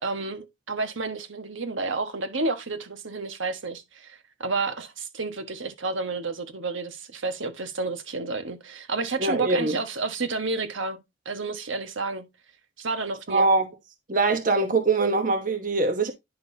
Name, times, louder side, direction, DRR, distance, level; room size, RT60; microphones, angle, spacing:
voice 1, 0.0-11.0 11.2-12.3 12.8-13.5, right 3 dB, 75° right, 1.4 m, -30 dB
voice 2, 9.2-9.8 13.3-13.7 14.1-16.1, right 3 dB, 40° right, 1.1 m, -22 dB
10.5 x 6.1 x 2.8 m
head